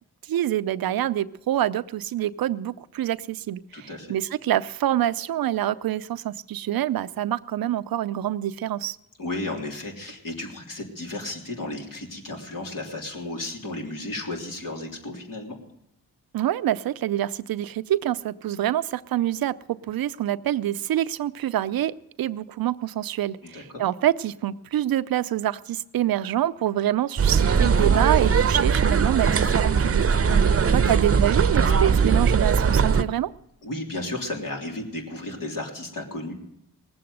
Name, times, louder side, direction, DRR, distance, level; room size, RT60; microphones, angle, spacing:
voice 1, 0.2-9.0 16.3-30.1 30.7-33.3, right 12 dB, 75° right, 15 dB, 0.6 m, -26 dB
voice 2, 3.7-4.1 9.2-15.5 23.4-23.8 30.3-30.6 33.6-36.3, left 2 dB, 65° left, 0 dB, 3.3 m, -34 dB
sound 1, 27.2-33.0, right 6 dB, 40° right, 0.8 m, -20 dB
19.0 x 7.8 x 7.9 m, 0.81 s
cardioid pair, 60°, 36 cm